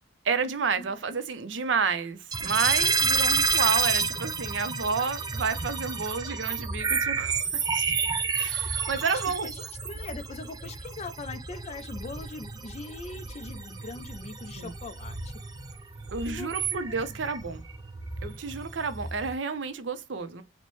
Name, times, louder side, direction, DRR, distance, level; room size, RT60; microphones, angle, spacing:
voice 1, 0.2-7.8 8.4-9.5 14.6-14.7 16.1-17.6 18.2-20.4, right 5 dB, 70° right, 0.6 m, -30 dB
sound 1, 2.3-19.3, right 5 dB, 20° right, 0.5 m, -30 dB
voice 2, 9.1-9.6 9.8-15.3 16.3-17.1, left 3 dB, 35° left, 0.4 m, -41 dB
4.1 x 2.1 x 3.0 m
head